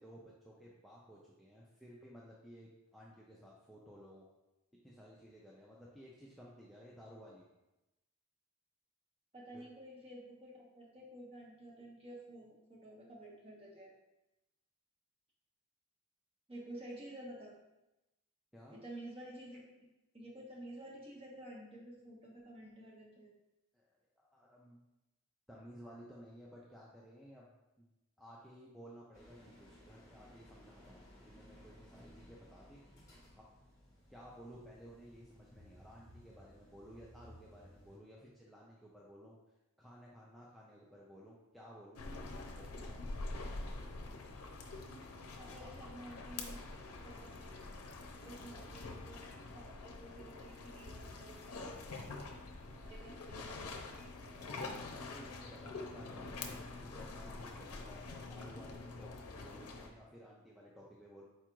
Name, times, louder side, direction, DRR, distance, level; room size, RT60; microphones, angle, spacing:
voice 1, 0.0-4.2 4.8-7.5 9.5-9.6 18.5-18.8 23.7-23.9 24.2-24.8 25.5-27.9 28.2-33.4 34.1-39.4 39.8-42.0 42.5-44.0 45.6-45.7 48.4-48.5 54.9-56.5 56.8-61.2, equal, ahead, -5 dB, 0.4 m, -56 dB
voice 2, 9.3-13.9 16.5-17.5 18.7-19.6 20.1-23.3 45.3-46.6 47.0-47.6 48.2-49.2 49.5-52.0 52.7-54.6, right 1 dB, 25° right, -3 dB, 1.0 m, -51 dB
sound 1, 29.1-38.0, equal, 15° left, 1.0 m, -59 dB
sound 2, 42.0-59.9, left 3 dB, 85° left, 0.6 m, -46 dB
4.6 x 2.4 x 4.4 m, 0.97 s
head